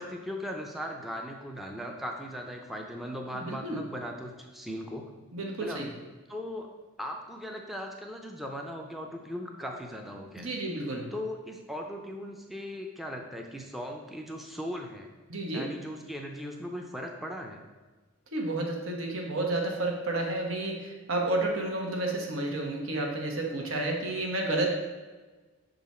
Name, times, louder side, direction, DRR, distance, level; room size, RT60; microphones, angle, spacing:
voice 1, 0.0-5.0 5.6-5.9 6.3-6.7 7.0-10.6 11.1-15.1 15.5-17.6, equal, ahead, 1 dB, 0.4 m, -38 dB
voice 2, 3.3-3.8 5.3-5.9 10.4-11.1 15.3-15.7 18.3-24.7, right 2 dB, 85° right, 1 dB, 1.1 m, -31 dB
6.0 x 3.9 x 4.2 m, 1.3 s
head